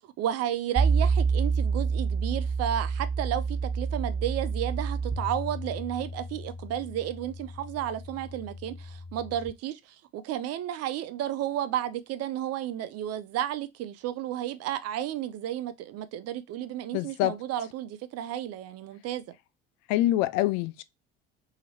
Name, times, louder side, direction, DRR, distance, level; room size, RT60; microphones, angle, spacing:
voice 1, 0.2-9.8 10.1-19.2, right 11 dB, 50° right, 0.5 m, -32 dB
sound 1, 0.8-9.5, right 5 dB, 10° right, 1.3 m, -29 dB
voice 2, 16.9-17.4 19.9-20.8, left 15 dB, 65° left, 0.4 m, -25 dB
2.9 x 2.8 x 2.7 m
hypercardioid pair, 70°, 31 cm